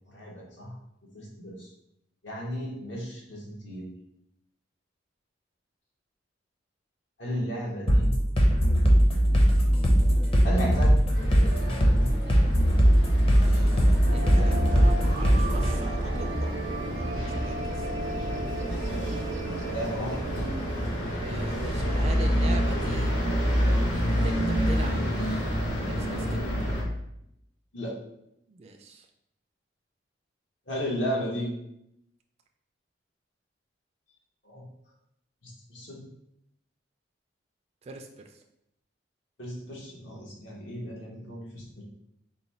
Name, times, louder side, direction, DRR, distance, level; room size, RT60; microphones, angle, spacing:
voice 1, 0.1-0.7 1.1-1.6 2.2-3.8 7.2-8.1 10.4-11.0 18.9-19.2 19.7-20.4 27.7-27.9 30.7-31.5 34.4-34.6 35.4-36.0 39.4-41.8, equal, 80° left, -3 dB, 1.3 m, -34 dB
sound 1, 7.9-15.7, equal, 30° left, 0.7 m, -20 dB
sound 2, 11.1-26.8, equal, 60° left, 1.5 m, -29 dB
voice 2, 13.4-16.6 16.9-17.5 21.2-23.1 23.9-24.4 24.7-25.6 25.9-26.4 28.5-29.0 37.9-38.1, right 3 dB, 35° right, 3 dB, 0.3 m, -41 dB
sound 3, 14.0-21.6 21.8-21.9 23.1-23.5, right 2 dB, 90° right, 0.5 m, -37 dB
4.0 x 2.2 x 4.2 m, 0.78 s
head